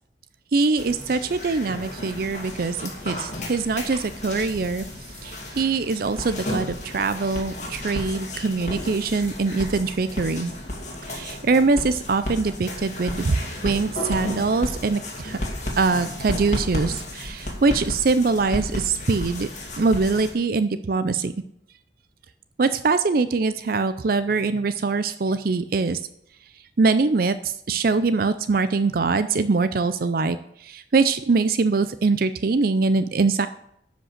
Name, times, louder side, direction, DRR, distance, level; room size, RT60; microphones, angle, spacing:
voice 1, 0.5-4.8 5.2-10.5 11.1-13.4 13.6-15.4 15.8-19.5 19.8-21.3 22.6-26.0 26.8-30.4 30.6-33.5, right 4 dB, 55° right, 12 dB, 0.5 m, -23 dB
sound 1, 0.8-20.3, left 1 dB, 40° left, 2.5 m, -33 dB
12.0 x 5.2 x 6.6 m, 0.73 s
head